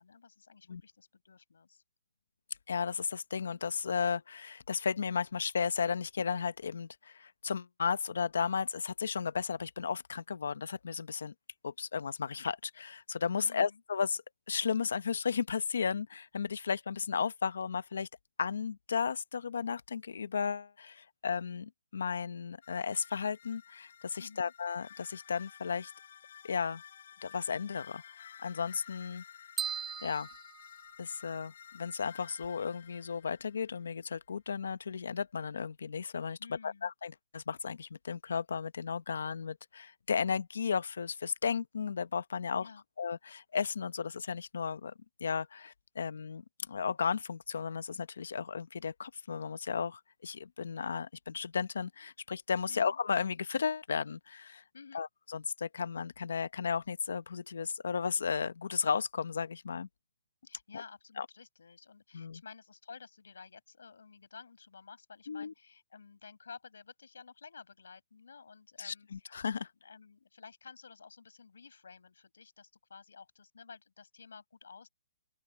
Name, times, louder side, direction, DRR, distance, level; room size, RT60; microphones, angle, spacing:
voice 1, 0.0-1.8 13.4-13.8 24.2-24.5 36.4-36.9 42.6-42.8 52.7-53.0 54.7-55.0 60.4-69.3 69.8-74.9, left 5 dB, 85° left, 7.1 m, -53 dB
voice 2, 2.7-11.3 11.6-18.1 18.4-25.9 26.4-26.8 27.2-29.2 30.0-30.3 31.0-42.7 43.0-44.9 45.2-54.6 54.9-59.9 61.2-61.3 62.1-62.4 65.3-65.5 68.8-69.7, left 6 dB, 70° left, 0.9 m, -34 dB
sound 1, 22.6-33.9, left 8 dB, 45° left, 7.2 m, -54 dB
sound 2, 29.6-31.5, right 8 dB, 10° right, 0.8 m, -39 dB
open air
hypercardioid pair, 175°, 0 cm